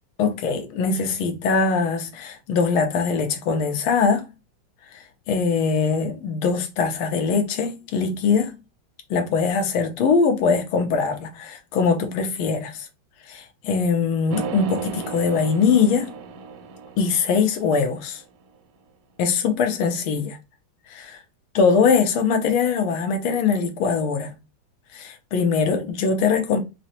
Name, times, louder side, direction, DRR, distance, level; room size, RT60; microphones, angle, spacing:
voice 1, 0.2-4.2 5.3-8.5 9.1-12.9 13.3-16.1 17.0-18.2 19.2-20.4 20.9-21.2 21.5-24.4 24.9-26.6, left 5 dB, 80° left, 1.6 m, -22 dB
sound 1, 14.3-18.4, right 5 dB, 90° right, 1.5 m, -35 dB
5.1 x 2.1 x 2.8 m
omnidirectional pair, 2.3 m